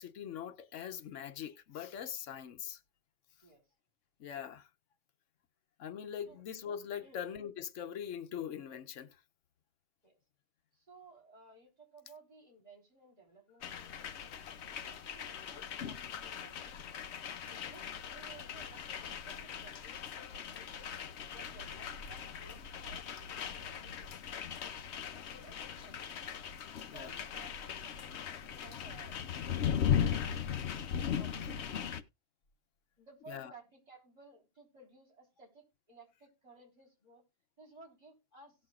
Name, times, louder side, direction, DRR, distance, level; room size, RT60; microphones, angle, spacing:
voice 1, 0.0-2.8 4.2-4.7 5.8-9.1 26.9-27.2 33.3-33.5, left 9 dB, 85° left, 1.1 m, -42 dB
voice 2, 10.7-14.4 14.7-16.8 17.2-20.9 21.3-24.7 25.1-26.4 26.9-29.2 29.5-32.0 33.0-37.2 37.6-38.5, right 2 dB, 35° right, 3.9 m, -58 dB
sound 1, 13.6-32.0, left 8 dB, 70° left, 1.0 m, -38 dB
17.5 x 6.3 x 2.4 m
omnidirectional pair, 1.2 m